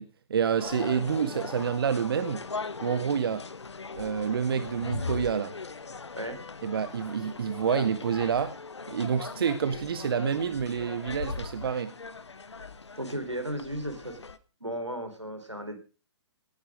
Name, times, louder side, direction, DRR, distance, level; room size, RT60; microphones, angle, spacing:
voice 1, 0.0-2.4 2.8-3.5 3.9-5.6 6.6-8.6 8.9-11.9, right 7 dB, 55° right, 0.9 m, -28 dB
sound 1, 0.6-14.4, left 4 dB, 75° left, 1.1 m, -39 dB
voice 2, 13.0-14.2 14.6-15.8, right 1 dB, 85° right, 4.2 m, -35 dB
18.5 x 10.5 x 5.1 m
figure-of-eight pair, 125°, 15 cm